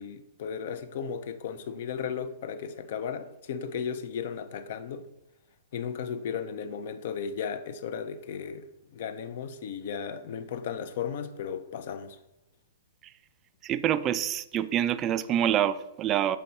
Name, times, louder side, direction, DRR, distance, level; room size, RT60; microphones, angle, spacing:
voice 1, 0.0-5.0 5.7-8.6 8.9-12.2, left 7 dB, 45° left, 0.5 m, -35 dB
voice 2, 13.6-16.4, right 10 dB, 25° right, 0.3 m, -26 dB
6.5 x 4.5 x 4.0 m
figure-of-eight pair, 110°, 0 cm